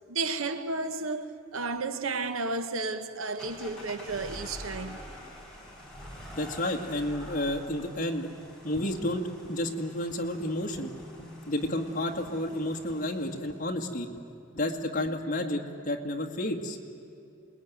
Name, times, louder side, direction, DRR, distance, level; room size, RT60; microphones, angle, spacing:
voice 1, 0.1-5.0, right 3 dB, 85° right, 1.1 m, -32 dB
sound 1, 3.4-13.6, equal, 5° left, 5.2 m, -46 dB
voice 2, 6.3-8.3 8.6-10.9 11.5-14.1 14.5-16.8, left 1 dB, 40° left, 2.0 m, -31 dB
Guitar, 8.7-10.4 10.7-12.5 12.9-13.1 13.5-13.8 14.1-14.3 14.5-14.7 15.0-15.2, left 1 dB, 65° left, 2.3 m, -48 dB
27.5 x 20.5 x 9.5 m
head